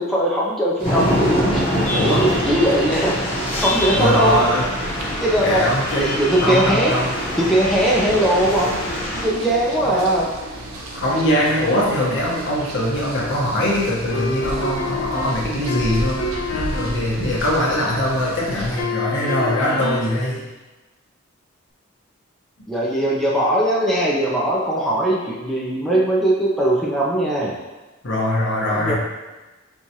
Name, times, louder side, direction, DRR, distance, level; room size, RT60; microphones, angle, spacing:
voice 1, 0.0-3.2 3.6-4.4 5.2-5.7 5.9-6.9 7.4-8.7 9.1-10.3 22.7-27.5 28.7-28.9, right 1 dB, ahead, -6 dB, 0.5 m, -20 dB
sound 1, 0.8-9.2, equal, 35° left, 0.9 m, -24 dB
sound 2, 0.8-18.8, right 1 dB, 90° right, 0.6 m, -34 dB
voice 2, 1.9-2.3 3.9-4.6 5.4-6.1 6.4-7.1 9.8-10.0 10.9-20.4 28.0-28.9, equal, 60° left, -4 dB, 0.9 m, -22 dB
sound 3, 14.1-17.1 18.8-20.2, left 3 dB, 80° left, 0.6 m, -27 dB
4.5 x 2.4 x 2.8 m, 1.1 s
head